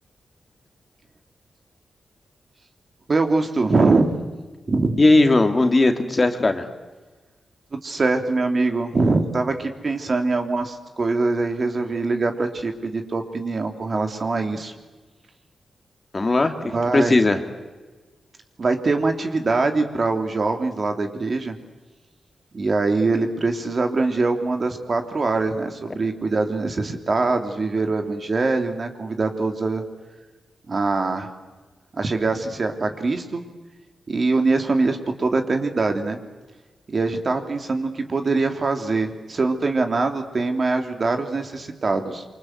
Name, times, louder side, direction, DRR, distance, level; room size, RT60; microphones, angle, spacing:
voice 1, 3.1-4.1 4.7-5.0 7.7-14.7 16.6-17.1 18.6-21.5 22.5-29.8 30.7-31.3 31.9-33.4 34.1-36.2 36.9-42.2, right 3 dB, 45° right, 5 dB, 3.1 m, -23 dB
voice 2, 5.0-6.6 16.1-17.4, left 2 dB, 30° left, 6 dB, 2.4 m, -18 dB
27.0 x 25.0 x 7.9 m, 1.2 s
wide cardioid pair, 100°, 0 cm